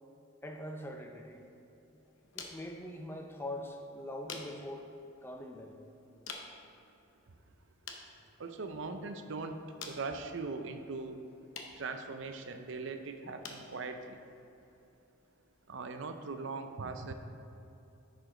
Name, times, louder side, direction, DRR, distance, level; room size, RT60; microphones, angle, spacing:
voice 1, 0.4-1.4 2.3-4.9 5.2-5.8, left 1 dB, 10° left, 3 dB, 0.5 m, -43 dB
sound 1, 1.1-16.2, left 4 dB, 65° left, 0.8 m, -53 dB
voice 2, 8.4-11.2 11.8-14.2 15.7-17.1, right 3 dB, 60° right, 7 dB, 0.5 m, -40 dB
10.0 x 5.0 x 3.8 m, 2.9 s
head